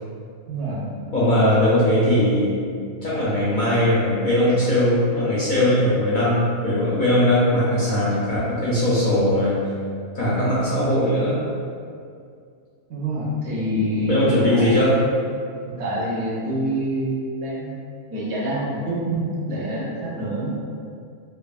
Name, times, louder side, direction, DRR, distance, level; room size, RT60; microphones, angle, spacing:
voice 1, 0.5-1.0 12.9-14.7 15.7-20.5, right 1 dB, 70° right, -5 dB, 0.8 m, -26 dB
voice 2, 1.1-2.6 3.0-9.5 10.1-11.4 14.1-15.0, left 1 dB, 55° left, -9 dB, 0.6 m, -19 dB
2.5 x 2.3 x 2.3 m, 2.3 s
omnidirectional pair, 1.2 m